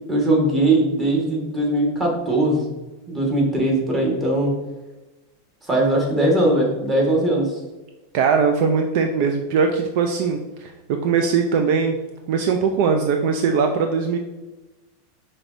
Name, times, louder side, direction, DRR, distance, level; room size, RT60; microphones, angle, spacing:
voice 1, 0.1-2.7 3.1-4.5 5.7-7.6, right 1 dB, 20° right, -2 dB, 1.4 m, -20 dB
voice 2, 8.1-12.0 12.3-14.2, right 5 dB, 55° right, 5 dB, 0.4 m, -20 dB
5.8 x 3.1 x 2.6 m, 1.1 s
supercardioid pair, 130°, 0 cm